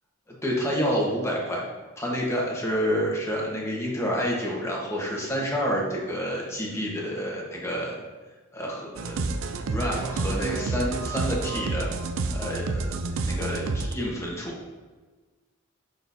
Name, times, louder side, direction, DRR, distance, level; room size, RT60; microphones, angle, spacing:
voice 1, 0.3-1.6 2.0-7.9 8.5-9.2 9.7-11.9 12.3-12.9 13.2-14.6, equal, 15° left, -3 dB, 1.2 m, -28 dB
sound 1, 9.0-13.9, right 3 dB, 75° right, 0.5 m, -29 dB
6.5 x 6.4 x 2.7 m, 1.3 s
head